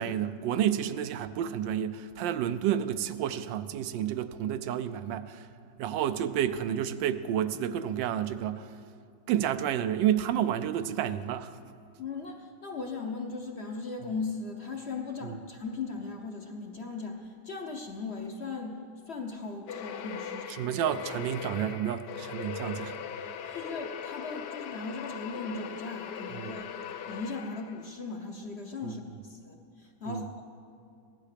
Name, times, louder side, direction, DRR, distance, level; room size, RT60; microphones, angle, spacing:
voice 1, 0.0-5.5 5.8-8.7 9.3-11.5 15.2-15.4 20.5-22.9 23.5-23.6 26.3-26.5 28.8-29.0 30.1-30.3, right 10 dB, 75° right, 12 dB, 1.2 m, -30 dB
voice 2, 12.0-20.6 23.5-26.7 27.1-30.4, left 4 dB, 50° left, 3 dB, 0.8 m, -38 dB
sound 1, 19.7-28.0, left 7 dB, 70° left, 1.2 m, -40 dB
16.5 x 11.5 x 5.0 m, 2.6 s
omnidirectional pair, 2.1 m